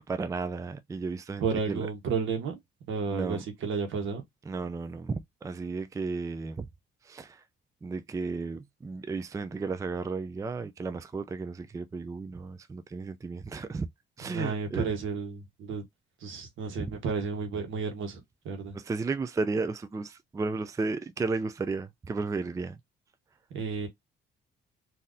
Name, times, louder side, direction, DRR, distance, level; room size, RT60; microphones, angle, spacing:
voice 1, 0.1-1.9 3.1-3.4 4.5-6.7 7.0-7.4 7.8-13.9 14.2-14.9 16.8-17.0 18.7-22.8, right 4 dB, 15° right, 0.4 m, -34 dB
voice 2, 1.4-2.6 2.9-4.2 14.3-15.8 16.2-18.8 23.5-23.9, right 5 dB, 80° right, 1.3 m, -32 dB
3.7 x 2.7 x 2.6 m
cardioid pair, 90°, 20 cm